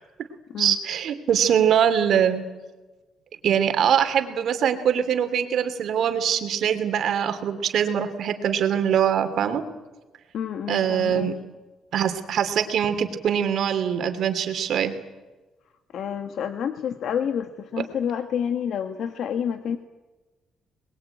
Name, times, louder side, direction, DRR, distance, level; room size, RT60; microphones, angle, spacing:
voice 1, 0.6-2.4 3.4-9.6 10.7-11.4 11.9-14.9 17.8-17.9, right 8 dB, 70° right, 8 dB, 2.8 m, -23 dB
voice 2, 10.3-11.3 15.9-19.8, left 8 dB, 70° left, 8 dB, 1.5 m, -28 dB
27.0 x 21.0 x 9.0 m, 1.2 s
cardioid pair, 90°, 0 cm